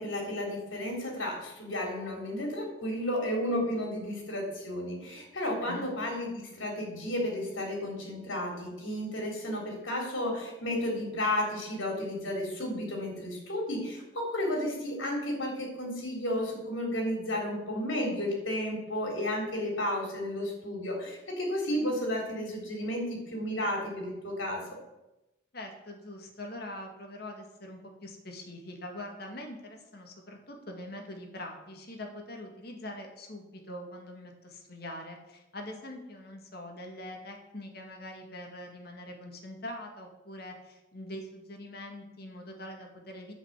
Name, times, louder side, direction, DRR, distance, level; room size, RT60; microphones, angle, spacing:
voice 1, 0.0-24.6, left 1 dB, 85° left, 1 dB, 3.7 m, -32 dB
voice 2, 25.5-43.3, left 1 dB, 55° left, 2 dB, 2.0 m, -43 dB
10.0 x 5.8 x 8.2 m, 0.97 s
head